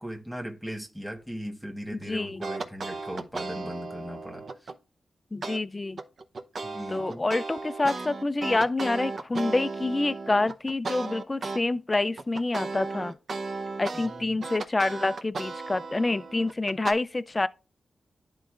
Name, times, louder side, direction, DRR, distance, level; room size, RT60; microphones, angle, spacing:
voice 1, 0.0-4.7 6.6-7.2 13.9-14.4, equal, ahead, 1.2 m, -38 dB
voice 2, 1.9-2.4 5.3-6.0 6.9-13.1 13.8-17.5, left 2 dB, 30° left, 0.3 m, -27 dB
sound 1, 2.4-4.8 5.4-5.6 6.0-11.6 12.0-16.9, right 3 dB, 65° right, 0.7 m, -35 dB
11.0 x 3.9 x 2.4 m
cardioid pair, 70°, 0 cm